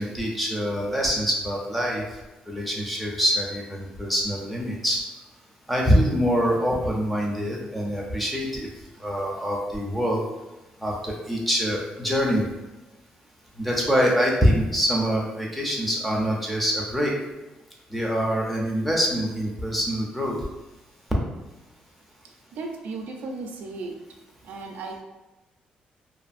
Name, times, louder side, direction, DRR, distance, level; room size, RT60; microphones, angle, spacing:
voice 1, 0.0-2.0 2.5-5.0 5.7-8.7 9.0-10.2 10.8-12.4 13.6-17.1 17.9-20.4, equal, ahead, -3 dB, 0.5 m, -24 dB
voice 2, 22.5-24.0 24.4-25.0, right 3 dB, 80° right, 2 dB, 0.4 m, -35 dB
2.5 x 2.5 x 2.4 m, 1.1 s
cardioid pair, 135°, 3 cm